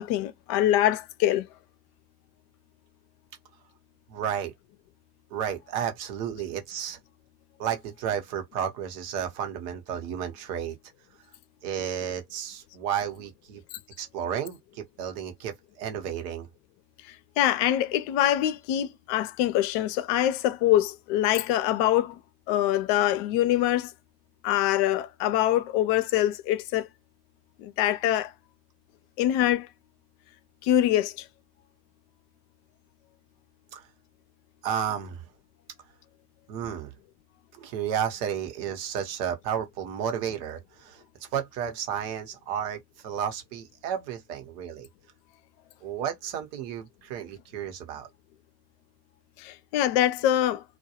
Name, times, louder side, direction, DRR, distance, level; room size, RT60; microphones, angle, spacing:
voice 1, 0.0-1.5 17.4-22.2 22.5-23.9 24.4-26.9 27.6-28.3 29.2-29.7 30.6-31.2 49.4-50.6, left 12 dB, 60° left, 0.6 m, -24 dB
voice 2, 4.1-4.5 5.3-7.0 7.6-10.8 11.6-13.6 14.0-16.5 33.7-33.8 34.6-35.2 36.5-36.9 37.6-41.0 41.3-44.9 45.8-48.1, right 8 dB, 70° right, 1.0 m, -32 dB
2.2 x 2.2 x 2.8 m
hypercardioid pair, 65°, 47 cm